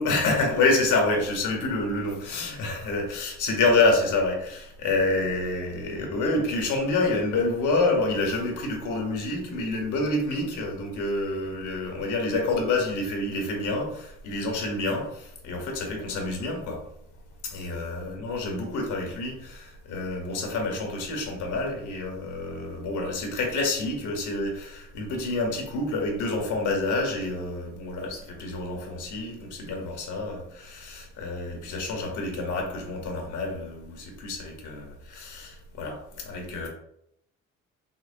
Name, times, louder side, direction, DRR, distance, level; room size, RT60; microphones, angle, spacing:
voice 1, 0.0-16.8 17.5-36.0 36.2-36.7, left 2 dB, 80° left, 1 dB, 1.1 m, -28 dB
5.5 x 2.1 x 2.7 m, 0.74 s
cardioid pair, 90°, 30 cm